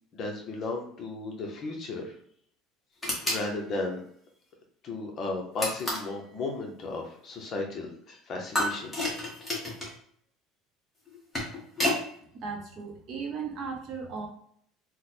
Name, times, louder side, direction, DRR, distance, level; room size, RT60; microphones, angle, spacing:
voice 1, 0.1-2.1 3.2-4.0 4.8-8.9, left 3 dB, 35° left, 0 dB, 0.7 m, -34 dB
sound 1, 3.0-3.5 5.6-6.1 8.5-9.9 11.1-12.0, left 1 dB, 5° left, 1.0 m, -30 dB
voice 2, 12.3-14.3, right 5 dB, 40° right, 1 dB, 0.7 m, -36 dB
3.0 x 2.1 x 4.1 m, 0.64 s
cardioid pair, 165°, 0 cm